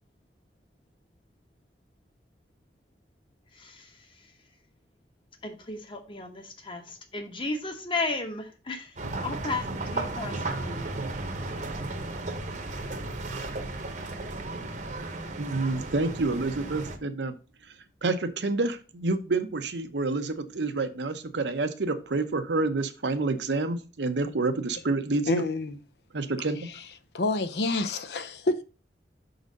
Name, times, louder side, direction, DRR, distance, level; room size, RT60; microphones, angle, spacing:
voice 1, 3.5-4.3 5.4-11.0 11.3-11.5, left 3 dB, 30° left, 1.1 m, -35 dB
sound 1, 9.0-17.0, right 2 dB, 45° right, 0.9 m, -34 dB
voice 2, 15.4-17.4 18.0-25.4 26.1-26.7, right 3 dB, 80° right, 0.8 m, -28 dB
voice 3, 25.3-25.8 26.6-26.8 27.1-28.6, left 2 dB, 65° left, 0.6 m, -28 dB
6.1 x 4.0 x 5.2 m
head